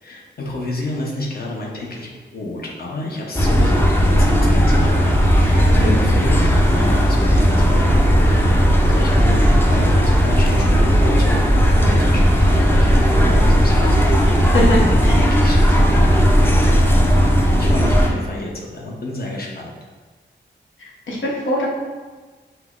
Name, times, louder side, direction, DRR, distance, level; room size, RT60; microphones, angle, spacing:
voice 1, 0.0-16.7 17.2-19.8, left 2 dB, 50° left, -2 dB, 0.8 m, -30 dB
sound 1, 3.4-18.1, equal, 10° left, 0.4 m, -15 dB
voice 2, 14.5-15.1 21.1-21.7, equal, 80° left, -4 dB, 1.0 m, -21 dB
5.5 x 2.0 x 3.7 m, 1.4 s
wide cardioid pair, 145°, 20 cm